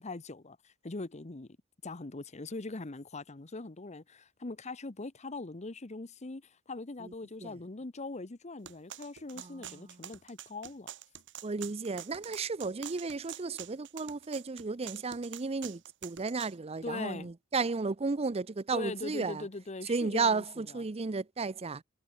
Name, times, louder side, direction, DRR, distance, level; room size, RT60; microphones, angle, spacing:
voice 1, 0.0-1.6 1.8-10.9 16.8-17.3 18.7-20.9, left 3 dB, 30° left, 0.9 m, -41 dB
sound 1, 8.7-16.5, right 11 dB, 60° right, 1.4 m, -46 dB
voice 2, 11.4-19.4 19.9-21.8, right 4 dB, 30° right, 0.5 m, -33 dB
head